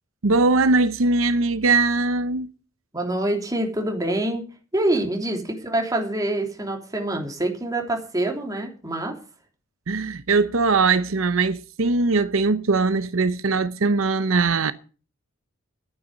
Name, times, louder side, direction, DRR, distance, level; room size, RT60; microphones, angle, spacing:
voice 1, 0.2-2.5 9.9-14.7, right 3 dB, 85° right, 0.8 m, -21 dB
voice 2, 2.9-4.4 4.7-9.2, right 1 dB, 20° right, 3.2 m, -25 dB
12.0 x 9.2 x 7.8 m
head